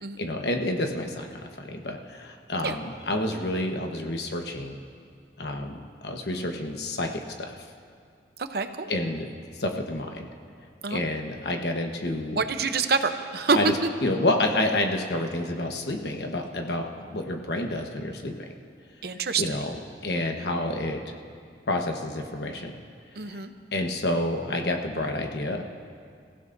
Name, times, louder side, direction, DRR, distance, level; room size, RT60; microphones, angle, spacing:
voice 1, 0.2-4.8 5.4-7.2 8.9-9.3 9.6-10.3 10.9-12.4 13.5-13.7 14.0-18.3 19.4-19.7 20.0-21.0 21.7-22.7 23.3-23.4 23.7-25.6, left 1 dB, 65° left, 3 dB, 1.2 m, -29 dB
voice 2, 8.4-8.9 10.8-11.0 12.3-13.9 19.0-19.6 23.2-23.5, right 4 dB, 60° right, 8 dB, 0.8 m, -26 dB
28.0 x 15.5 x 2.7 m, 2.2 s
head